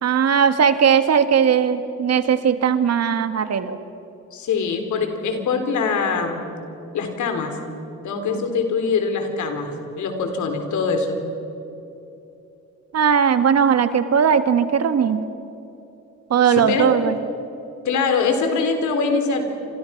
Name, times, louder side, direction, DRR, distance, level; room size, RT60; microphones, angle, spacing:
voice 1, 0.0-3.8 12.9-15.2 16.3-17.2, right 7 dB, 55° right, 10 dB, 1.7 m, -18 dB
voice 2, 4.3-6.4 6.9-7.6 8.0-11.2 16.4-17.1 17.8-19.4, left 4 dB, 75° left, 6 dB, 4.0 m, -23 dB
29.5 x 26.5 x 6.0 m, 2.9 s
cardioid pair, 90°, 30 cm